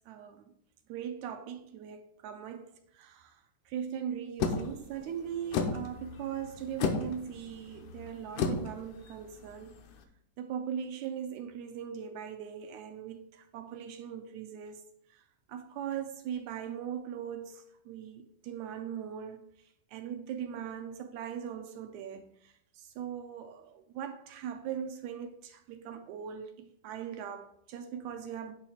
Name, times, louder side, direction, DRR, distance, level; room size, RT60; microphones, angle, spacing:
voice 1, 0.1-0.4 0.9-3.4 3.7-9.8 10.4-14.8 15.5-19.4 19.9-28.5, right 8 dB, 80° right, 1.8 m, -40 dB
sound 1, 4.4-10.0, left 5 dB, 80° left, 2.2 m, -35 dB
9.6 x 3.2 x 5.6 m
omnidirectional pair, 3.7 m